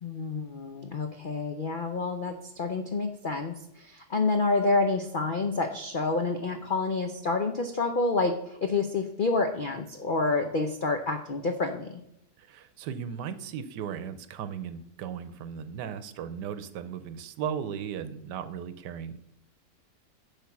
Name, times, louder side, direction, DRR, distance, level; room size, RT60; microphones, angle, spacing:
voice 1, 0.0-12.0, left 3 dB, 65° left, 5 dB, 0.5 m, -28 dB
voice 2, 12.4-19.2, right 8 dB, 75° right, 12 dB, 1.3 m, -36 dB
10.0 x 3.6 x 7.1 m, 0.79 s
omnidirectional pair, 1.9 m